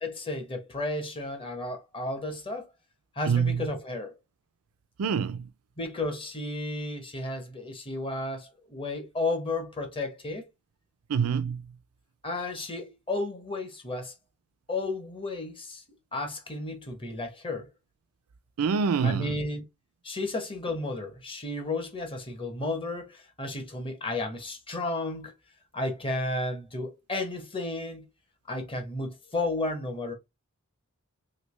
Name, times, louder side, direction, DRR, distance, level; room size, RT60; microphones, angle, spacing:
voice 1, 0.0-2.7 3.2-4.1 5.8-10.4 12.2-14.1 14.7-15.8 16.1-17.7 19.0-19.6 20.0-25.3 25.7-28.0 28.5-30.1, left 2 dB, 25° left, 0.8 m, -33 dB
voice 2, 3.3-3.7 5.0-5.5 11.1-11.7 18.6-19.3, right 6 dB, 85° right, 0.4 m, -26 dB
3.2 x 2.8 x 3.1 m
head